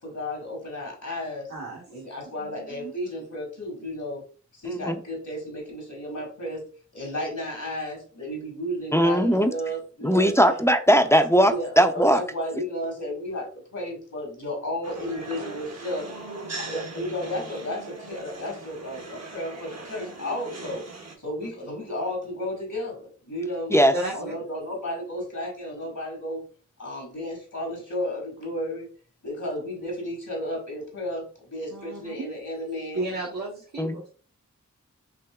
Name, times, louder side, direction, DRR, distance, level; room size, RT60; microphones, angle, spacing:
voice 1, 0.0-1.5 1.9-4.2 4.5-6.6 6.9-10.6 11.5-16.1 16.6-20.8 21.2-23.7 24.1-26.4 26.8-28.9 29.2-33.1, left 1 dB, 75° left, -1 dB, 1.8 m, -33 dB
voice 2, 1.5-1.8 2.4-2.9 23.7-24.3 31.7-32.3 32.9-34.0, right 2 dB, 75° right, -5 dB, 1.2 m, -33 dB
voice 3, 8.9-9.5 10.0-12.2 23.7-23.9 33.8-34.0, equal, 10° left, 7 dB, 0.4 m, -19 dB
sound 1, 14.8-21.2, right 3 dB, 55° right, 0.9 m, -39 dB
5.8 x 2.8 x 2.3 m, 0.40 s
wide cardioid pair, 50°, 30 cm